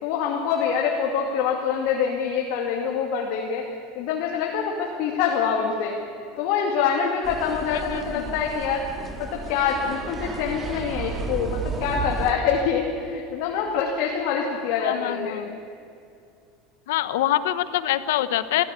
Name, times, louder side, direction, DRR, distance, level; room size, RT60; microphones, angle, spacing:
voice 1, 0.0-3.7 3.9-5.9 6.4-8.9 9.2-15.4, left 7 dB, 65° left, 0 dB, 2.6 m, -25 dB
sound 1, 7.2-12.3, right 4 dB, 25° right, 1.9 m, -33 dB
voice 2, 14.8-15.6 16.9-18.6, left 13 dB, 85° left, 13 dB, 1.0 m, -24 dB
23.5 x 15.5 x 8.5 m, 2.5 s
supercardioid pair, 135°, 0 cm